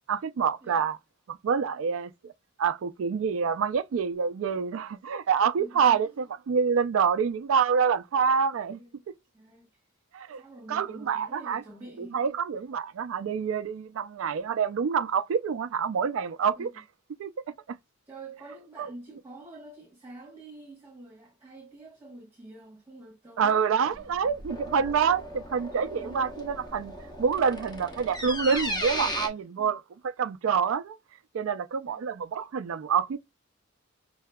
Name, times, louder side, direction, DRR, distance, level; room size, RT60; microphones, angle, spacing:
voice 1, 0.1-1.0 1.3-2.3 2.6-8.8 10.1-10.4 10.7-11.6 12.0-16.7 17.2-17.3 17.7-17.8 18.8-18.9 23.4-26.9 27.2-31.0 31.3-33.2, right 6 dB, 70° right, 0.4 m, -27 dB
voice 2, 5.6-6.3 8.7-9.0 9.3-9.7 10.4-12.3 16.5-16.8 18.1-24.3 25.8-26.3 29.6-29.7 31.9-32.0, right 2 dB, 10° right, 1.1 m, -47 dB
sound 1, 23.9-29.3, equal, 20° left, 0.9 m, -36 dB
5.6 x 2.6 x 2.2 m
head